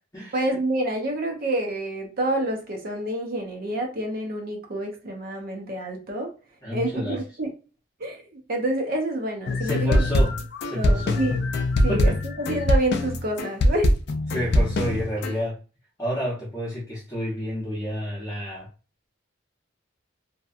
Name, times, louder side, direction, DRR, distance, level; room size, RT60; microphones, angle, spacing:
voice 1, 0.3-6.3 6.7-7.5 8.0-10.1 10.7-11.4 11.8-13.9, right 1 dB, 50° right, 0.6 m, -28 dB
voice 2, 6.6-7.2 9.6-10.3 10.6-11.2 11.9-12.2 14.3-15.6 16.0-18.7, equal, 15° left, 0.7 m, -30 dB
sound 1, 9.5-15.3, left 1 dB, 55° left, 0.4 m, -22 dB
2.7 x 2.2 x 2.4 m
head